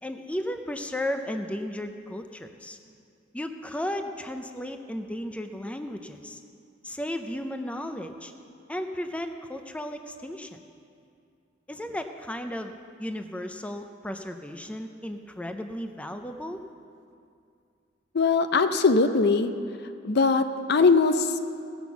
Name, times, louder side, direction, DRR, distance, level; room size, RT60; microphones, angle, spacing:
voice 1, 0.0-2.8 3.3-6.4 6.8-8.3 8.7-10.6 11.7-12.7 13.0-16.6, left 1 dB, 5° left, 6 dB, 0.4 m, -34 dB
voice 2, 18.1-19.5 20.0-21.4, left 4 dB, 60° left, 9 dB, 0.6 m, -21 dB
16.0 x 6.1 x 7.0 m, 2.4 s
head